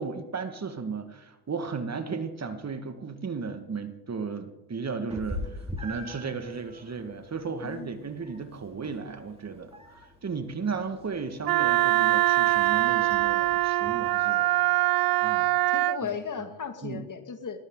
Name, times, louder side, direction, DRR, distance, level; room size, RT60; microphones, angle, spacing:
voice 1, 0.0-5.4 5.8-9.7 10.0-14.5 15.2-15.6 16.0-16.1 16.8-17.0, right 5 dB, 35° right, 8 dB, 1.9 m, -35 dB
Meow, 5.1-14.7, left 1 dB, 10° right, 5.6 m, -44 dB
Wind instrument woodwind instrument, 11.5-16.0, right 18 dB, 50° right, 0.5 m, -23 dB
voice 2, 15.7-17.6, left 6 dB, 40° left, 8 dB, 2.2 m, -35 dB
21.0 x 14.0 x 3.9 m, 1.0 s
hypercardioid pair, 60°, 48 cm